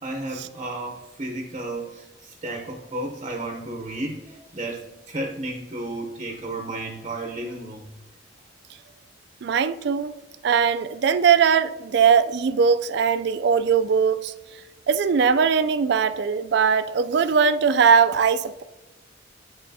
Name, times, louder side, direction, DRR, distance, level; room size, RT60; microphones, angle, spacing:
voice 1, 0.0-7.9, right 2 dB, 30° right, 0.7 m, -33 dB
voice 2, 9.4-10.1 10.4-14.3 14.9-18.6, right 6 dB, 60° right, 0.3 m, -20 dB
10.5 x 3.6 x 2.7 m
head